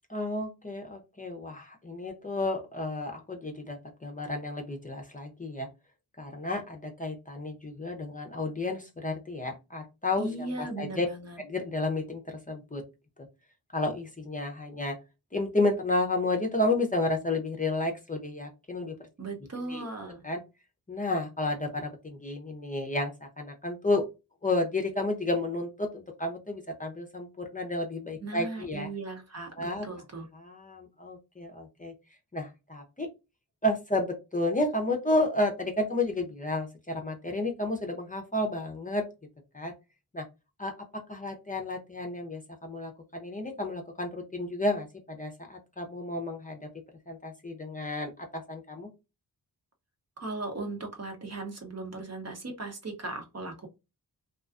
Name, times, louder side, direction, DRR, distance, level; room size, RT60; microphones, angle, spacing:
voice 1, 0.1-5.7 6.2-10.3 10.6-11.1 11.4-12.8 13.7-15.0 15.3-19.0 19.7-19.8 20.2-20.4 20.9-24.1 24.4-28.9 29.6-29.9 30.3-31.9 32.3-33.1 33.6-39.0 39.5-39.7 40.1-40.3 40.6-46.7 47.1-48.9, left 2 dB, 20° left, 3 dB, 0.6 m, -31 dB
voice 2, 10.2-11.4 19.2-20.2 28.2-30.3 50.2-53.7, right 2 dB, 40° right, 3 dB, 0.8 m, -37 dB
2.4 x 2.3 x 2.4 m, 0.26 s
cardioid pair, 50°, 40 cm